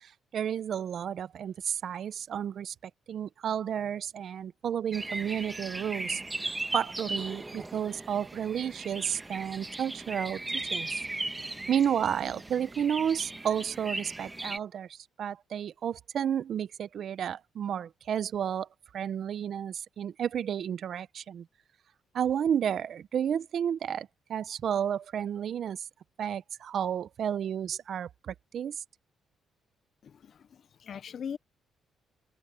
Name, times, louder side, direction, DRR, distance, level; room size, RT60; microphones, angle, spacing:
voice 1, 0.0-10.9 11.7-18.7 18.9-21.5 22.1-25.8 26.2-28.8, right 9 dB, 60° right, 0.7 m, -32 dB
sound 1, 4.9-14.6, right 2 dB, 15° right, 1.7 m, -37 dB
voice 2, 30.0-31.4, left 7 dB, 55° left, 0.7 m, -41 dB
cardioid pair, 90°, 0 cm